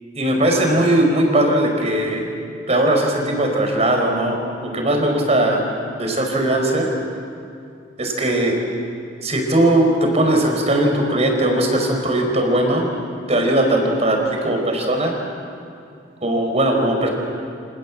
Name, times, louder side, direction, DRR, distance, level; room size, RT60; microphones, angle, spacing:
voice 1, 0.2-2.3 2.7-5.6 6.0-6.9 8.0-8.6 9.2-12.9 13.3-15.1 16.2-17.1, right 1 dB, 35° right, 2 dB, 5.3 m, -19 dB
29.0 x 26.5 x 7.7 m, 2.5 s
head